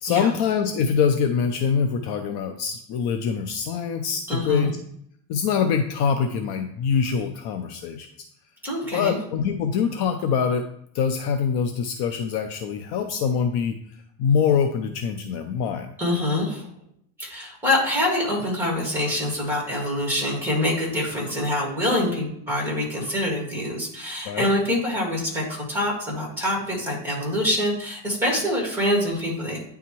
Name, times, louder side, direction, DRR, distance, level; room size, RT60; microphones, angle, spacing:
voice 1, 0.0-4.8 5.3-8.1 8.9-10.6 10.9-13.8 14.2-15.9 24.2-24.5, left 6 dB, 55° left, 6 dB, 0.5 m, -24 dB
voice 2, 4.3-4.7 8.6-9.2 16.0-16.7 17.2-29.6, left 1 dB, 5° right, -2 dB, 1.8 m, -25 dB
9.2 x 3.5 x 3.0 m, 0.70 s
cardioid pair, 160°, 49 cm